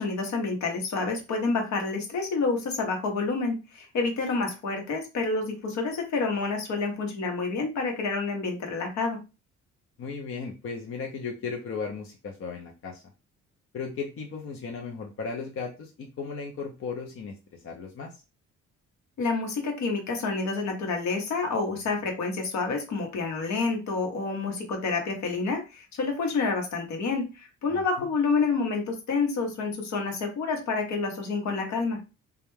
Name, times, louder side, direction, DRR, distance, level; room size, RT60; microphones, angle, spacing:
voice 1, 0.0-9.2 19.2-32.0, left 4 dB, 65° left, 3 dB, 1.0 m, -28 dB
voice 2, 10.0-13.0 13.7-17.4 17.6-18.2 27.7-27.9, left 5 dB, 45° left, 1 dB, 0.6 m, -36 dB
2.3 x 2.2 x 3.1 m, 0.29 s
cardioid pair, 90°, 30 cm